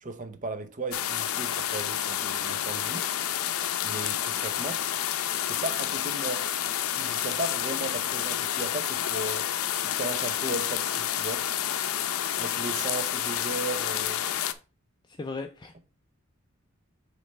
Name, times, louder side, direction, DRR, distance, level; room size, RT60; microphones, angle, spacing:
voice 1, 0.0-3.1 3.8-4.8 5.5-6.5 7.0-9.5 9.8-11.5 12.4-14.2, right 2 dB, 40° right, 0.7 m, -36 dB
sound 1, 0.9-14.5, left 10 dB, 85° left, 0.5 m, -29 dB
voice 2, 15.1-15.8, left 3 dB, 20° left, 0.4 m, -37 dB
6.3 x 3.3 x 5.3 m
head